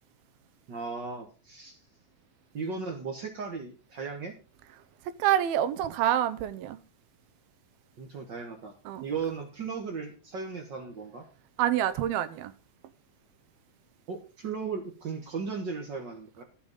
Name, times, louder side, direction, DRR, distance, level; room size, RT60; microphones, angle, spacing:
voice 1, 0.7-1.8 2.5-4.3 8.0-8.7 9.0-11.3 14.1-16.4, right 5 dB, 65° right, 1.0 m, -36 dB
voice 2, 5.2-6.8 8.9-9.0 11.6-12.5, right 11 dB, 85° right, 2.7 m, -27 dB
12.5 x 7.0 x 5.3 m
omnidirectional pair, 4.2 m